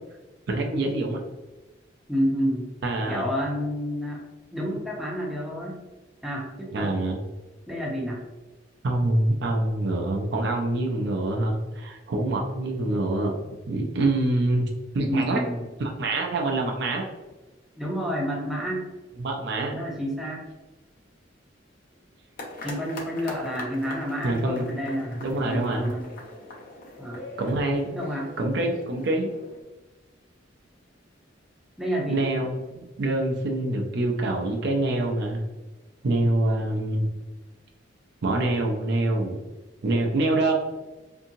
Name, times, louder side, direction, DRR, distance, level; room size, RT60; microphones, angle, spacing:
voice 1, 0.5-1.2 2.8-3.3 6.7-7.2 8.8-13.3 13.7-14.7 14.9-15.4 15.8-17.0 19.2-19.8 24.2-25.9 27.4-27.9 28.4-29.3 32.1-35.4 36.0-37.0 38.2-39.4 39.8-40.5, right 2 dB, 60° right, 1 dB, 0.5 m, -25 dB
voice 2, 2.1-2.7 3.1-4.2 4.5-5.8 6.2-6.9 7.7-8.2 15.0-15.7 17.8-18.9 19.7-20.4 22.6-26.1 27.0-27.2 27.8-28.3 31.8-32.2, equal, ahead, -3 dB, 0.6 m, -29 dB
sound 1, 22.4-29.6, left 2 dB, 45° left, 0.5 m, -42 dB
2.7 x 2.7 x 2.6 m, 1.1 s
head